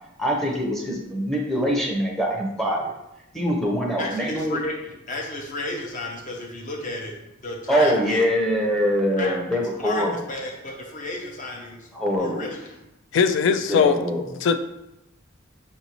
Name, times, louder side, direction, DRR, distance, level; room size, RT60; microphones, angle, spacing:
voice 1, 0.2-2.9 3.3-4.6 7.7-10.1 11.9-12.5 13.7-14.2, equal, ahead, -1 dB, 0.7 m, -23 dB
voice 2, 4.0-7.1 7.4-8.2 9.2-9.3 9.8-11.9 12.2-12.8, left 2 dB, 40° left, 0 dB, 0.8 m, -33 dB
voice 3, 13.1-14.0 14.4-14.6, left 6 dB, 65° left, 10 dB, 0.3 m, -19 dB
5.2 x 2.6 x 2.9 m, 0.89 s
head